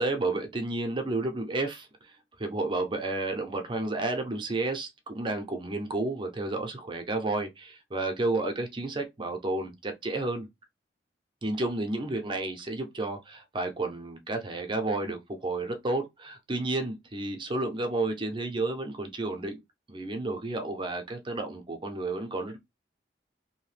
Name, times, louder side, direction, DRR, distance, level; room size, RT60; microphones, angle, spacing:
voice 1, 0.0-1.9 2.4-10.5 11.4-19.6 19.9-22.6, right 2 dB, 30° right, 0.6 m, -31 dB
2.7 x 2.2 x 3.2 m
head